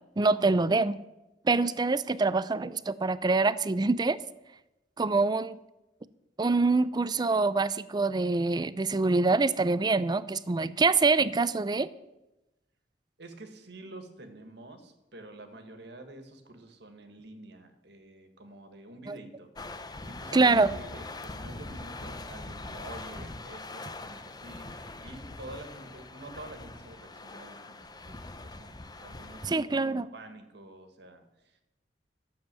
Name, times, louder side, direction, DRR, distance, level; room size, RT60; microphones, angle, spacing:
voice 1, 0.2-1.0 1.4-4.2 5.0-5.6 6.4-11.9 19.1-19.2 20.3-20.7 29.4-30.1, right 3 dB, 25° right, 17 dB, 0.4 m, -25 dB
voice 2, 13.2-27.8 28.0-29.9 30.1-31.6, right 2 dB, 65° right, 7 dB, 1.7 m, -48 dB
sound 1, 19.6-29.5, left 2 dB, 20° left, 0.7 m, -42 dB
12.5 x 7.3 x 7.5 m, 0.96 s
head